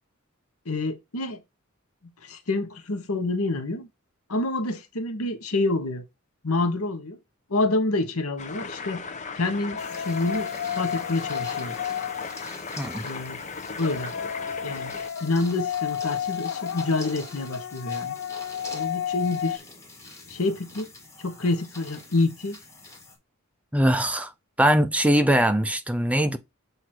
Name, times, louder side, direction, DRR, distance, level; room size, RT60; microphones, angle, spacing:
voice 1, 0.7-1.4 2.2-3.9 4.3-6.0 6.4-7.2 7.5-9.0 9.3-11.7 13.0-13.4 13.8-14.1 14.6-14.9 15.2-18.1 18.7-19.6 20.3-20.9 21.2-22.6, left 2 dB, 85° left, 1.1 m, -27 dB
sound 1, 8.4-15.1, left 4 dB, 35° left, 0.7 m, -37 dB
sound 2, 9.7-12.8 13.7-19.6, left 9 dB, 60° left, 0.4 m, -32 dB
sound 3, 9.8-23.2, left 2 dB, 15° left, 1.8 m, -45 dB
voice 2, 23.7-24.3 24.6-26.4, right 1 dB, 5° right, 0.5 m, -21 dB
7.9 x 2.7 x 4.4 m
head